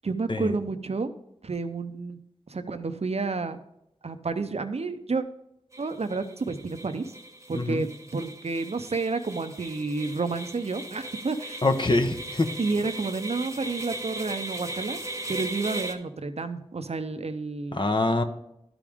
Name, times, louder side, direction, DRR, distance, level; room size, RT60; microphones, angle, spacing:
voice 1, 0.0-1.1 1.4-2.2 2.5-3.6 4.0-5.2 5.8-7.1 7.5-11.6 12.6-15.0 15.3-17.9, right 3 dB, 65° right, 9 dB, 0.6 m, -30 dB
sound 1, 5.7-15.9, right 1 dB, 25° right, 1.0 m, -38 dB
voice 2, 7.5-7.9 11.6-12.5 17.7-18.2, left 2 dB, 45° left, 6 dB, 0.9 m, -24 dB
12.0 x 5.0 x 3.5 m, 0.80 s
wide cardioid pair, 50°, 12 cm